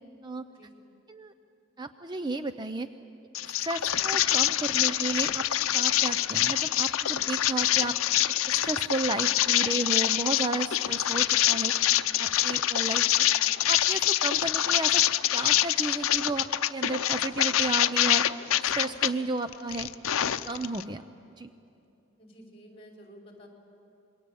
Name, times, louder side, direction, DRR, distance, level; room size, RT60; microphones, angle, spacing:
voice 1, 0.5-0.9 22.2-23.5, equal, 30° left, 0 dB, 5.0 m, -51 dB
voice 2, 1.8-2.9 3.4-5.5 5.7-8.0 8.5-11.8 12.2-13.3 13.7-15.0 15.3-18.3 18.6-19.9 20.5-21.0 21.3-21.5, right 2 dB, 20° right, 9 dB, 0.5 m, -33 dB
sound 1, 3.3-19.1 19.5-20.8, left 12 dB, 90° left, 0.6 m, -25 dB
27.5 x 23.0 x 8.6 m, 2.7 s
head